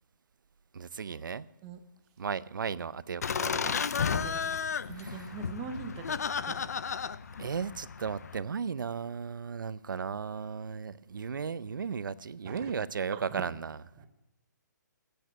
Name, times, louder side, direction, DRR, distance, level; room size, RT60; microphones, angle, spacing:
voice 1, 0.7-1.5 2.2-3.8 4.9-5.3 7.4-13.8, right 6 dB, 85° right, 0.5 m, -35 dB
Laughter, 3.2-8.4, left 6 dB, 55° left, 0.4 m, -33 dB
voice 2, 4.1-4.5 4.9-6.7 12.5-12.7 13.1-13.5 14.0-14.1, right 5 dB, 10° right, 0.6 m, -42 dB
9.2 x 8.0 x 9.1 m
hypercardioid pair, 175°, 10 cm